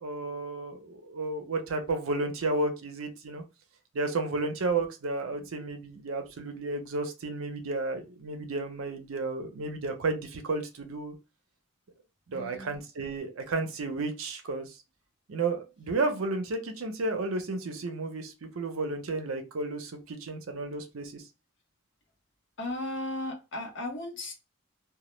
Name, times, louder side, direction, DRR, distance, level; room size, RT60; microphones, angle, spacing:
voice 1, 0.0-3.4 3.9-11.1 12.3-14.8 15.3-21.2, right 3 dB, 70° right, 6 dB, 0.5 m, -32 dB
voice 2, 12.3-12.7 22.6-24.3, left 1 dB, 55° left, 2 dB, 0.7 m, -36 dB
2.1 x 2.0 x 3.0 m, 0.28 s
head